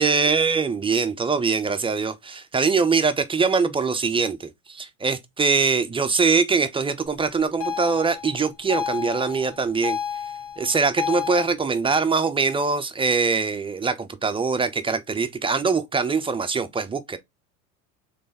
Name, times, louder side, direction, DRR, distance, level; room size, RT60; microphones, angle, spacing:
voice 1, 0.0-10.0 10.6-17.2, right 4 dB, 15° right, 0.5 m, -23 dB
sound 1, 7.6-11.5, left 8 dB, 65° left, 1.9 m, -30 dB
3.4 x 3.2 x 4.0 m
hypercardioid pair, 90°, 42 cm